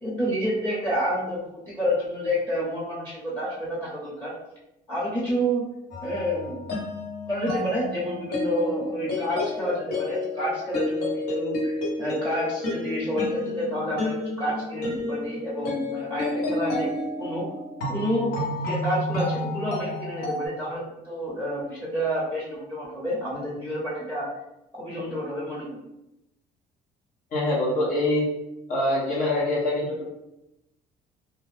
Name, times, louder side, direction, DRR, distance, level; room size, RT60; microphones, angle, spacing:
voice 1, 0.0-4.3 4.9-5.6 6.0-6.7 7.3-17.5 17.9-24.3 24.7-25.8, equal, 15° left, -7 dB, 0.9 m, -29 dB
sound 1, 5.9-20.5, left 2 dB, 70° left, 1.2 m, -30 dB
voice 2, 27.3-28.2 28.7-30.0, left 1 dB, 55° left, -5 dB, 1.0 m, -24 dB
2.6 x 2.3 x 3.3 m, 0.89 s
cardioid pair, 110°, 17 cm